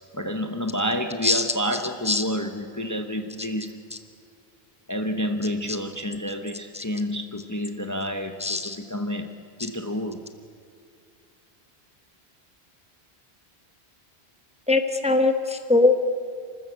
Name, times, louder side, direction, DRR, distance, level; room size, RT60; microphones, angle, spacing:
voice 1, 0.1-3.7 4.9-9.3 9.6-10.2, equal, 20° left, 5 dB, 0.9 m, -29 dB
voice 2, 8.4-8.8 14.7-16.0, left 3 dB, 5° right, 7 dB, 1.0 m, -21 dB
29.0 x 13.5 x 8.0 m, 2.3 s
omnidirectional pair, 1.1 m